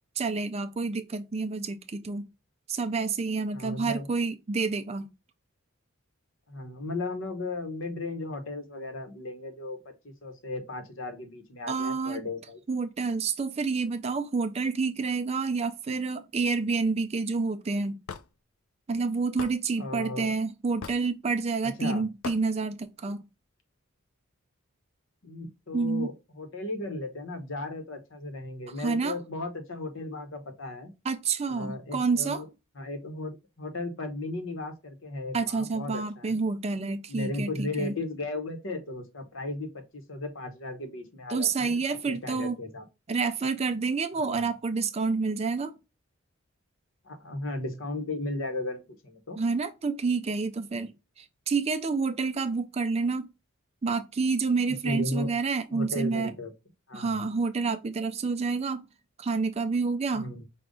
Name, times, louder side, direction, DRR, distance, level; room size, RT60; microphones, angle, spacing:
voice 1, 0.2-2.2 2.7-5.1 11.7-12.2 12.7-17.9 18.9-23.2 25.7-26.1 28.8-29.2 31.0-32.4 35.3-37.9 41.3-42.6 43.1-45.7 49.4-50.9 51.2-53.3 53.8-56.3 56.9-58.9 59.2-60.3, right 4 dB, 30° right, 0.4 m, -28 dB
voice 2, 3.5-4.1 6.5-12.6 19.8-20.3 21.6-22.0 25.2-30.9 31.5-32.5 32.7-36.5 37.1-42.8 47.0-49.4 54.7-55.4 55.7-56.5 56.9-57.2 60.1-60.5, left 2 dB, 65° left, 1.0 m, -36 dB
Hammer / Wood, 18.1-18.3 19.4-19.6 20.8-21.1 22.2-22.4, left 6 dB, 80° left, 0.4 m, -38 dB
5.1 x 2.3 x 3.6 m
head